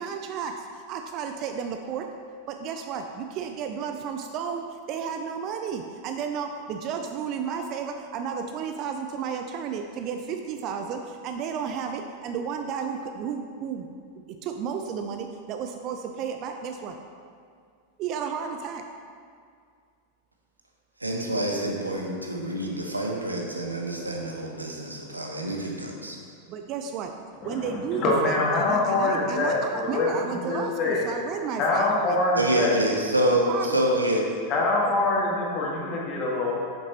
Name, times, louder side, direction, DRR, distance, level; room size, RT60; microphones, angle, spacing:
voice 1, 0.0-2.1 2.5-13.9 14.3-17.0 18.0-18.8 26.5-27.1 27.4-32.2 33.3-33.8, right 6 dB, 40° right, 5 dB, 0.4 m, -33 dB
voice 2, 21.0-26.2 32.4-34.2, right 1 dB, 85° right, 0 dB, 0.9 m, -26 dB
voice 3, 27.4-31.1 31.6-32.8 34.5-36.5, left 2 dB, 35° left, -3 dB, 1.8 m, -25 dB
8.6 x 7.1 x 3.0 m, 2.2 s
figure-of-eight pair, 90°, 0 cm